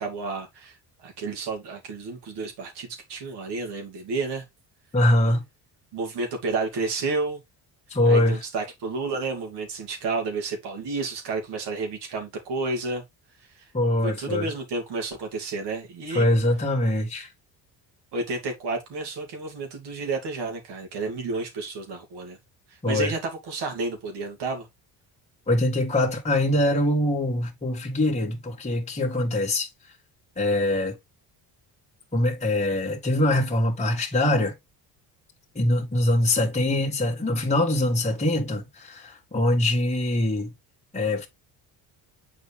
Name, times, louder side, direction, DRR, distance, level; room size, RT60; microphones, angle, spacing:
voice 1, 0.0-4.4 5.9-7.4 8.1-13.0 13.5-13.7 14.0-16.3 18.1-22.4 22.7-24.7, right 3 dB, 75° right, 2.9 m, -31 dB
voice 2, 4.9-5.4 7.9-8.4 13.7-14.5 16.1-17.3 22.8-23.1 25.5-29.7 30.3-30.9 32.1-34.5 35.5-40.5 40.9-41.3, left 1 dB, 15° left, 1.7 m, -23 dB
7.2 x 4.9 x 3.4 m
cardioid pair, 120°, 41 cm